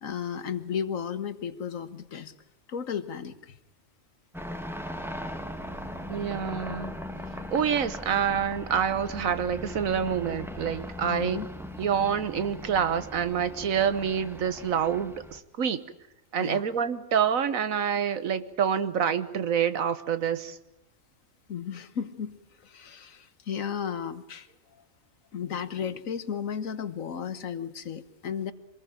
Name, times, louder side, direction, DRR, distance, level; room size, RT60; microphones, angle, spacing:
voice 1, 0.0-2.3 2.7-3.6 11.0-11.5 16.4-16.6 21.5-24.5 25.3-28.5, left 7 dB, 75° left, 12 dB, 1.6 m, -34 dB
sound 1, 4.3-15.4, equal, ahead, 1.4 m, -39 dB
voice 2, 6.1-6.9 7.5-11.4 11.8-15.8 16.3-20.6, right 8 dB, 80° right, 13 dB, 1.5 m, -27 dB
25.5 x 20.0 x 9.1 m, 0.84 s
omnidirectional pair, 1.4 m